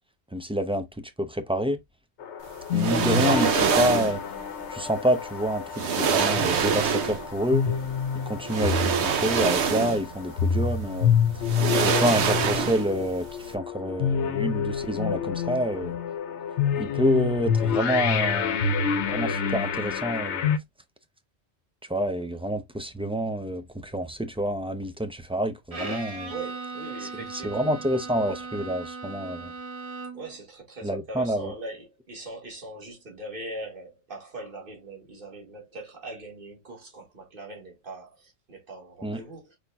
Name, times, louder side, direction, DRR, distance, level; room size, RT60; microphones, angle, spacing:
voice 1, 0.3-0.8 1.2-1.8 2.7-4.2 4.7-5.6 6.0-7.6 8.3-11.2 11.8-13.3 13.5-15.9 16.8-18.6 19.1-20.5 21.9-26.3 27.0-29.5 30.8-31.5 39.0-39.2, equal, 10° right, 0.3 m, -27 dB
sound 1, 2.2-20.6, left 7 dB, 80° left, 1.0 m, -28 dB
sound 2, 2.7-4.2 5.3-5.4 5.7-7.3 8.4-10.2 10.5-10.6 11.4-13.0 13.3-13.5, right 6 dB, 75° right, 1.1 m, -25 dB
Bowed string instrument, 25.7-30.4, right 3 dB, 35° right, 1.0 m, -37 dB
voice 2, 26.3-27.7 30.1-39.6, right 2 dB, 50° right, 2.1 m, -41 dB
4.9 x 4.3 x 2.3 m
omnidirectional pair, 1.1 m